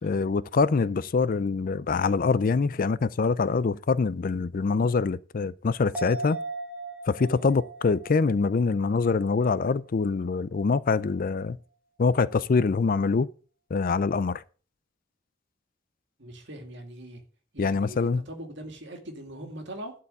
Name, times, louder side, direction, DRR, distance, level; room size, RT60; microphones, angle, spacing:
voice 1, 0.0-6.4 7.1-11.6 12.0-13.3 13.7-14.4 17.6-18.3, left 4 dB, 45° left, 0.4 m, -24 dB
sound 1, 5.9-9.6 10.0-10.1, right 2 dB, 5° right, 2.0 m, -39 dB
voice 2, 16.2-17.2 17.5-19.9, right 1 dB, 65° right, 2.4 m, -41 dB
12.0 x 4.8 x 7.8 m
head